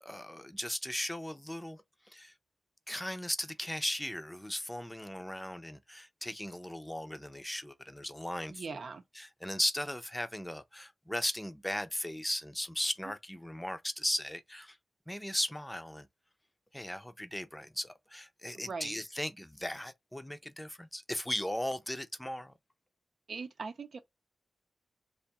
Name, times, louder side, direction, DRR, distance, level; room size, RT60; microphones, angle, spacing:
voice 1, 0.0-2.3 2.9-8.8 9.2-14.8 15.1-16.1 16.7-22.5, left 1 dB, 10° left, 0.6 m, -37 dB
voice 2, 8.5-9.0 18.5-19.0 23.3-24.0, right 4 dB, 70° right, 0.7 m, -40 dB
3.4 x 2.5 x 4.1 m
wide cardioid pair, 85°, 0 cm